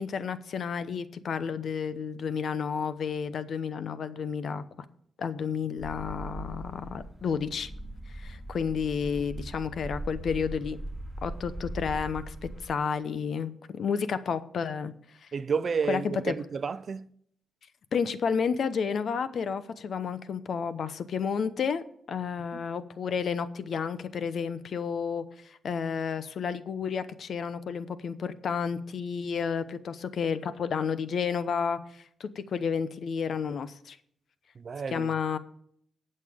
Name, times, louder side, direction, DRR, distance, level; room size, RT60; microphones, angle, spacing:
voice 1, 0.0-4.6 5.2-7.7 8.1-10.8 11.2-12.4 12.6-14.9 15.2-15.3 15.9-16.3 17.9-34.0 34.9-35.4, left 6 dB, 60° left, 0.8 m, -31 dB
sound 1, 5.8-12.7, right 1 dB, 10° left, 4.0 m, -40 dB
voice 2, 15.3-17.1 22.5-22.6 34.6-35.1, right 6 dB, 50° right, 0.5 m, -31 dB
18.5 x 6.6 x 3.6 m
cardioid pair, 90°, 0 cm